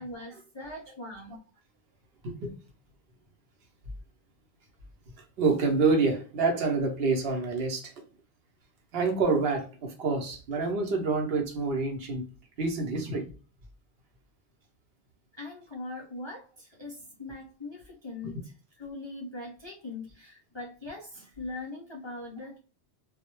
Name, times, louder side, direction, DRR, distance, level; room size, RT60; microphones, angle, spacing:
voice 1, 0.0-1.4 15.3-22.6, left 2 dB, 50° left, 0.3 m, -41 dB
voice 2, 5.4-7.9 8.9-12.2 12.6-13.3 18.2-18.3, right 4 dB, 65° right, 0.8 m, -27 dB
2.1 x 2.0 x 2.9 m
omnidirectional pair, 1.2 m